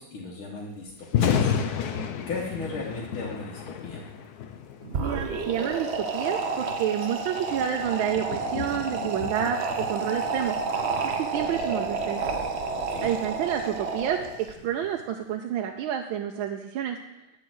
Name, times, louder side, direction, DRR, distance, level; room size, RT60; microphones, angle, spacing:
voice 1, 0.0-1.5 2.3-4.1 12.7-13.1, left 3 dB, 85° left, -2 dB, 2.2 m, -36 dB
Thunder, 1.0-15.1, left 7 dB, 60° left, 1.1 m, -34 dB
sound 1, 4.8-14.5, right 4 dB, 55° right, 0.7 m, -30 dB
voice 2, 5.0-10.6 11.0-12.3 13.0-14.2 14.6-17.0, right 9 dB, 80° right, 4 dB, 1.4 m, -29 dB
11.5 x 5.0 x 7.8 m, 0.93 s
omnidirectional pair, 2.2 m